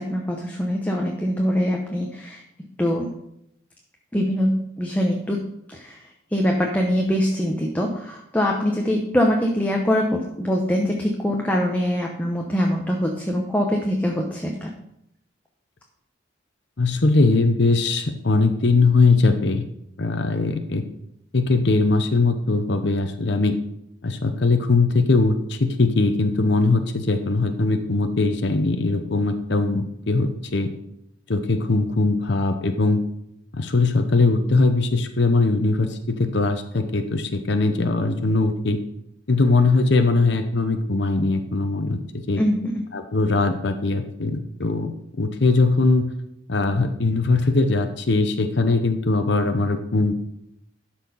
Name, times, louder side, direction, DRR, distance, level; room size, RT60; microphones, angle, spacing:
voice 1, 0.0-2.4 2.8-3.1 4.1-14.7 42.4-42.8, equal, 10° left, 0 dB, 0.8 m, -23 dB
voice 2, 16.8-19.6 20.0-20.8 21.3-23.6 24.0-30.7 31.3-33.0 33.5-38.8 39.3-42.0 42.3-42.4 42.9-44.9 45.2-46.1 46.5-50.1, left 3 dB, 60° left, 7 dB, 0.7 m, -20 dB
12.0 x 4.4 x 5.4 m, 0.76 s
head